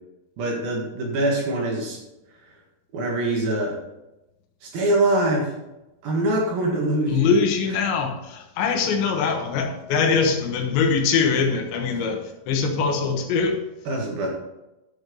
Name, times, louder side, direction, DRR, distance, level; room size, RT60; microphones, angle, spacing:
voice 1, 0.4-2.0 2.9-3.8 4.6-5.5 6.0-7.3 13.9-14.3, right 1 dB, 60° right, 0 dB, 3.3 m, -23 dB
voice 2, 7.1-13.6, left 5 dB, 75° left, 4 dB, 3.5 m, -22 dB
11.5 x 6.2 x 5.3 m, 0.95 s
omnidirectional pair, 5.3 m